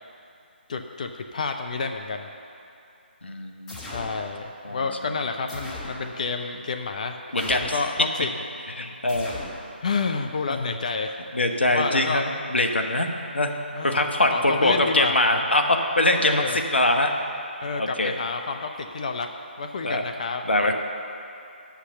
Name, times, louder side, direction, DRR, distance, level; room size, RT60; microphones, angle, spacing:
voice 1, 0.7-2.3 3.8-8.3 9.8-11.2 11.7-12.2 13.7-15.1 16.2-16.6 17.6-19.3 19.6-20.7, left 4 dB, 40° left, 5 dB, 0.5 m, -29 dB
voice 2, 3.2-3.7 4.6-4.8 7.3-7.7 8.8-9.4 10.5-10.6 11.3-12.2 12.5-13.1 13.3-13.5 13.8-16.4 16.7-17.1 17.8-18.2 19.8-20.0 20.5-20.7, left 1 dB, 70° left, 4 dB, 1.0 m, -22 dB
sound 1, 3.7-4.2 5.5-6.0 7.4-7.9 9.1-9.6, left 1 dB, 10° left, 1.3 m, -37 dB
9.7 x 5.9 x 6.9 m, 2.7 s
figure-of-eight pair, 145°, 6 cm